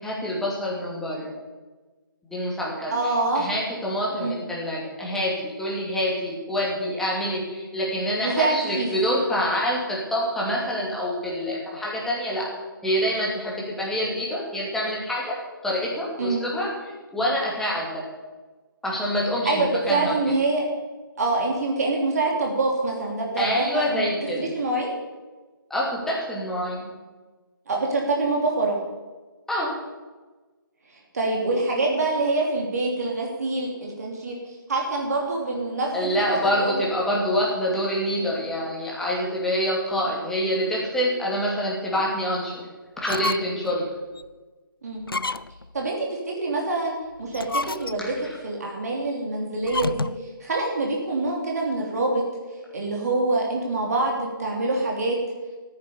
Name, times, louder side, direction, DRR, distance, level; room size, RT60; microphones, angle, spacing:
voice 1, 0.0-1.3 2.3-12.5 12.8-15.4 15.6-16.7 17.1-18.0 18.8-20.1 23.4-24.5 25.7-26.9 29.5-29.7 35.9-42.5 43.0-43.8 48.0-48.1, equal, 5° left, -5 dB, 2.7 m, -26 dB
voice 2, 2.9-3.5 4.2-4.4 8.2-8.9 16.2-16.4 19.4-20.6 21.2-24.1 24.4-24.9 27.7-28.8 31.1-34.4 34.7-36.8 44.8-45.0 45.7-48.1 48.4-50.1 50.4-52.2 52.7-55.2, right 2 dB, 45° right, -1 dB, 3.2 m, -25 dB
sound 1, 43.0-43.7 44.2-44.3 45.0-45.7 47.2-48.2 49.6-50.3, left 3 dB, 80° left, 0.5 m, -30 dB
14.5 x 9.7 x 7.0 m, 1.3 s
figure-of-eight pair, 145°, 12 cm